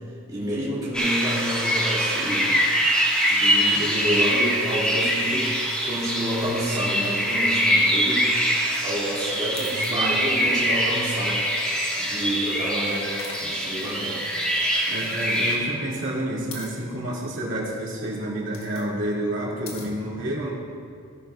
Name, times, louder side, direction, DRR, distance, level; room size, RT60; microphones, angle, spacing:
voice 1, 0.3-2.8 3.3-5.5 5.8-8.3 8.8-14.2, right 1 dB, 20° right, -9 dB, 2.2 m, -29 dB
sound 1, 0.9-15.6, equal, 5° left, 1.6 m, -24 dB
sound 2, 8.2-8.3 9.6-10.0 11.3-12.0 13.2-13.5 15.4-15.8 16.5-16.7 18.3-18.9 19.7-19.9, left 5 dB, 70° left, 1.5 m, -41 dB
voice 2, 9.9-10.2 14.9-20.5, right 1 dB, 60° right, -5 dB, 2.5 m, -29 dB
15.5 x 10.5 x 2.4 m, 2.3 s
head